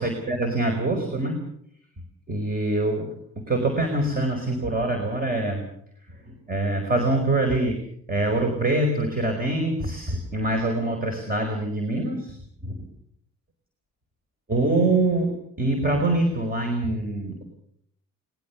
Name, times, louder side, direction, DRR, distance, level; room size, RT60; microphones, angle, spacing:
voice 1, 0.0-1.4 2.3-5.7 6.2-7.8 8.1-12.9 14.5-17.4, right 2 dB, 30° right, 5 dB, 4.7 m, -25 dB
20.5 x 20.5 x 7.0 m, 0.68 s
cardioid pair, 90°, 30 cm